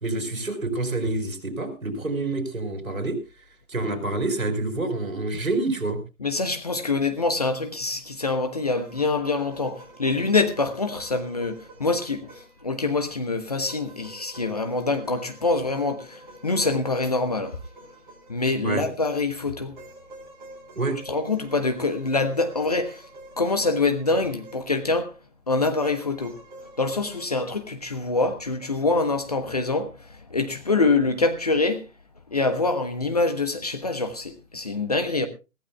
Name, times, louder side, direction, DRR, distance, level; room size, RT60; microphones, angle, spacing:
voice 1, 0.0-3.2 3.7-6.0 18.6-18.8 20.8-21.0, right 2 dB, 65° right, 3.9 m, -27 dB
voice 2, 6.2-17.5 18.3-19.8 21.1-23.0 23.4-25.1 25.5-26.4 26.8-31.8 32.3-35.3, left 3 dB, 25° left, 0.9 m, -25 dB
sound 1, 8.8-12.7 13.7-19.0 19.7-25.0 25.8-27.3, right 2 dB, 35° right, 3.8 m, -47 dB
22.5 x 15.0 x 2.2 m
figure-of-eight pair, 155°, 43 cm